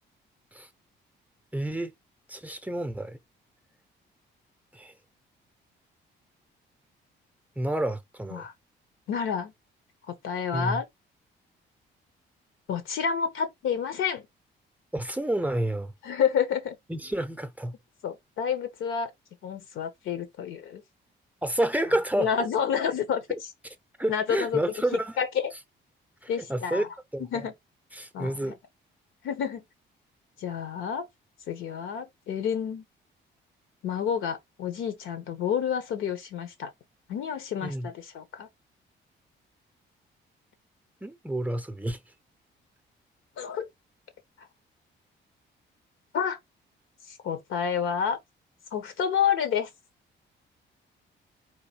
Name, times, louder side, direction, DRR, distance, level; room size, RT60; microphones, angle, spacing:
voice 1, 1.5-1.9 2.3-3.2 4.7-4.9 7.6-8.5 10.5-10.8 14.9-15.9 16.9-17.7 21.4-22.3 23.3-23.4 24.0-25.2 26.2-26.8 27.1-27.5 27.9-28.6 37.6-37.9 41.0-42.0, right 1 dB, 5° right, 0.6 m, -29 dB
voice 2, 9.1-9.5 10.1-10.9 12.7-14.2 16.0-16.8 18.0-19.1 19.4-20.8 22.2-23.2 24.1-24.6 25.2-25.3 26.3-26.9 27.2-27.5 28.1-28.5 29.2-29.6 30.4-31.1 31.5-32.8 33.8-36.7 37.1-38.5 43.4-43.7 46.1-46.4 47.1-48.2 48.7-49.7, left 7 dB, 85° left, 1.2 m, -29 dB
3.9 x 2.7 x 4.3 m
cardioid pair, 90°, 20 cm